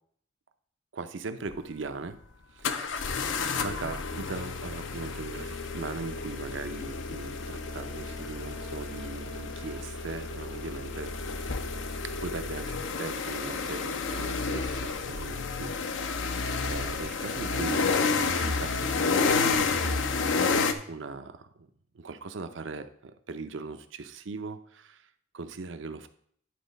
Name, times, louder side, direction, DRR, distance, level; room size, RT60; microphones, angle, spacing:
voice 1, 0.9-2.2 2.5-3.3 3.6-11.1 12.0-16.4 16.7-20.5 20.9-21.7 21.9-26.1, right 4 dB, 80° right, 10 dB, 0.6 m, -39 dB
sound 1, 1.5-1.6 2.6-20.7, left 4 dB, 90° left, 0.7 m, -30 dB
10.0 x 4.0 x 5.3 m, 0.62 s
head